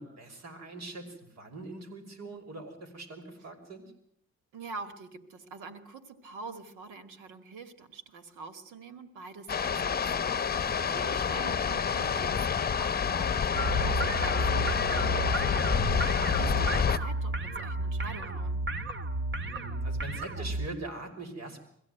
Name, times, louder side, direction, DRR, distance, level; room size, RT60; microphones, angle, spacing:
voice 1, 0.0-3.9 10.5-10.9 19.4-21.6, right 2 dB, 60° right, 5 dB, 5.7 m, -43 dB
voice 2, 4.5-18.6, right 4 dB, 90° right, 10 dB, 2.4 m, -45 dB
sound 1, 9.5-17.0, left 7 dB, 30° left, 0.9 m, -28 dB
sound 2, 13.6-20.7, right 2 dB, 40° right, 2.1 m, -32 dB
23.5 x 16.0 x 9.3 m, 0.69 s
cardioid pair, 90°, 30 cm